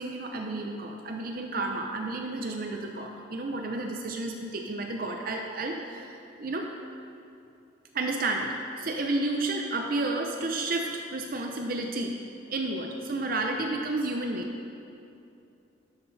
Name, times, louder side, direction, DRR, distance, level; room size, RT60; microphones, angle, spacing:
voice 1, 0.0-6.7 7.9-12.2 12.5-14.4, right 2 dB, 50° right, 2 dB, 0.6 m, -31 dB
12.5 x 6.0 x 4.0 m, 2.7 s
head